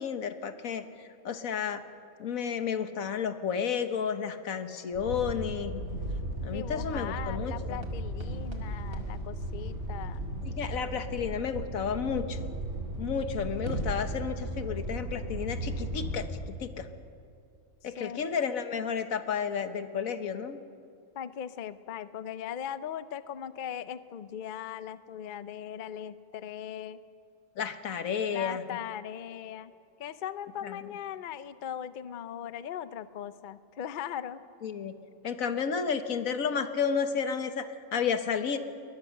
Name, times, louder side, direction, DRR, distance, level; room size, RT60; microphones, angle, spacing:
voice 1, 0.0-1.8 2.2-5.8 6.4-7.8 10.4-12.5 13.0-16.3 16.6-16.9 17.8-20.6 27.6-28.6 30.6-30.8 34.6-34.9 35.2-38.6, left 7 dB, 85° left, 9 dB, 1.6 m, -32 dB
sound 1, 4.9-16.3, right 1 dB, 60° right, 5.2 m, -36 dB
sound 2, 5.8-10.5 12.7-12.8 13.5-14.1, right 1 dB, 80° right, 2.6 m, -43 dB
voice 2, 6.5-10.3 17.8-18.3 21.1-27.0 28.3-29.7 30.0-34.4, left 9 dB, 50° left, 14 dB, 0.6 m, -39 dB
22.0 x 20.5 x 6.4 m, 2.5 s
omnidirectional pair, 1.4 m